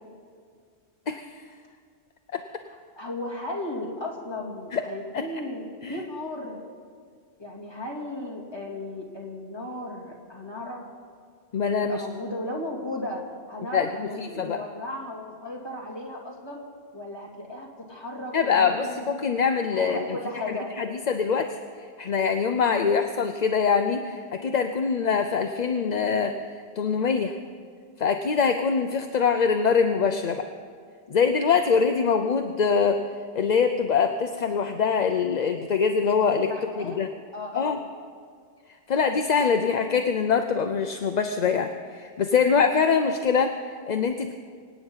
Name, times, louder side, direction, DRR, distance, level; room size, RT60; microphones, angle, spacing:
voice 1, 3.0-6.6 7.4-10.8 11.9-16.6 16.9-19.0 19.7-20.7 36.3-37.0 37.3-37.8, left 1 dB, 20° left, -3 dB, 2.7 m, -35 dB
voice 2, 11.5-12.0 13.7-14.6 18.3-20.0 20.8-21.5 22.0-26.3 26.8-27.3 28.0-30.5 31.1-33.0 33.3-36.5 36.8-37.1 37.5-37.8 38.9-44.3, left 6 dB, 45° left, 6 dB, 0.7 m, -23 dB
25.5 x 9.2 x 5.6 m, 2.1 s
omnidirectional pair, 1.1 m